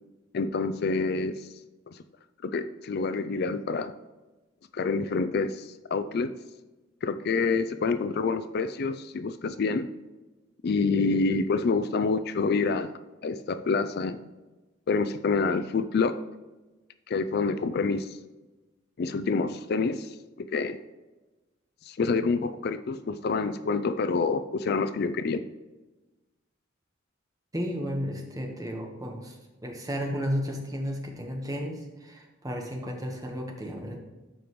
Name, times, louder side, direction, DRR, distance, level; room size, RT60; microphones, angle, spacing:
voice 1, 0.3-1.5 1.9-2.0 2.4-3.9 4.7-6.3 7.0-9.9 10.6-12.9 13.2-14.2 14.9-16.2 17.1-18.2 19.0-20.8 21.8-25.4, left 4 dB, 50° left, 12 dB, 0.4 m, -27 dB
voice 2, 27.5-29.4 29.6-34.0, equal, 20° right, 2 dB, 1.2 m, -33 dB
13.0 x 5.2 x 3.1 m, 1.1 s
head